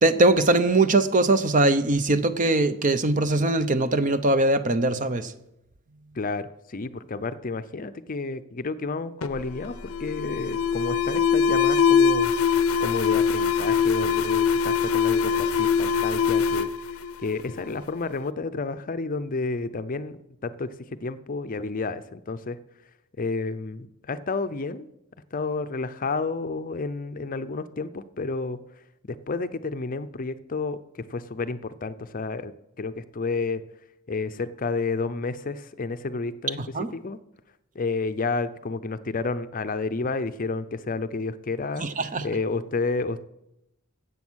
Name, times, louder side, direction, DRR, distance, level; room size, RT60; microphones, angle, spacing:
voice 1, 0.0-5.3 36.6-36.9 41.8-42.3, right 2 dB, 35° right, 0.7 m, -21 dB
voice 2, 6.1-9.7 10.0-12.3 12.8-16.7 17.2-20.7 21.0-22.6 23.2-24.9 25.3-28.6 29.0-30.8 31.1-32.5 32.8-33.6 34.1-36.6 36.9-37.2 37.7-41.8 42.2-43.2, left 3 dB, 40° left, 0.6 m, -30 dB
Alarm, 9.2-17.8, left 6 dB, 80° left, 0.6 m, -23 dB
14.5 x 8.3 x 6.3 m
head